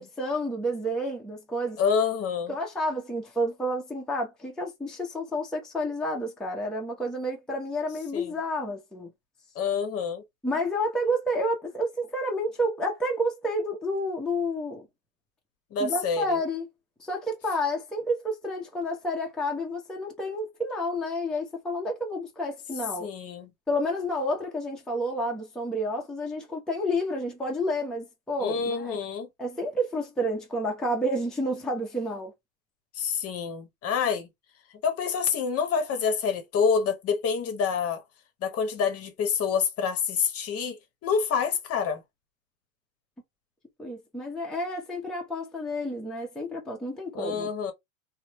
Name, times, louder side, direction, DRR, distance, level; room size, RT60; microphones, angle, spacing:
voice 1, 0.0-1.8 2.5-9.1 10.4-14.9 15.8-16.7 17.0-23.1 23.7-29.0 29.4-32.3 43.8-47.5, equal, ahead, 0.7 m, -30 dB
voice 2, 1.8-2.6 8.1-8.3 9.5-10.2 15.7-16.4 23.0-23.5 28.4-29.3 32.9-34.3 34.7-38.0 38.4-42.0 47.1-47.7, left 6 dB, 35° left, 0.9 m, -27 dB
3.1 x 2.1 x 2.9 m
hypercardioid pair, 105°, 41 cm